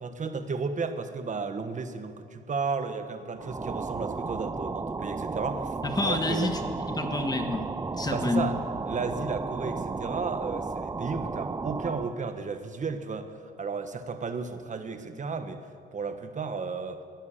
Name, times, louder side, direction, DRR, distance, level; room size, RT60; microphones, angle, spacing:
voice 1, 0.0-5.7 6.0-6.5 8.1-8.5 8.8-13.3 13.6-15.6 15.9-17.0, right 4 dB, 40° right, 8 dB, 1.3 m, -33 dB
sound 1, 3.4-12.2, right 4 dB, 20° right, 0.5 m, -34 dB
voice 2, 5.8-8.5, left 2 dB, 20° left, 6 dB, 1.5 m, -29 dB
16.5 x 10.5 x 7.3 m, 2.2 s
cardioid pair, 90°, 20 cm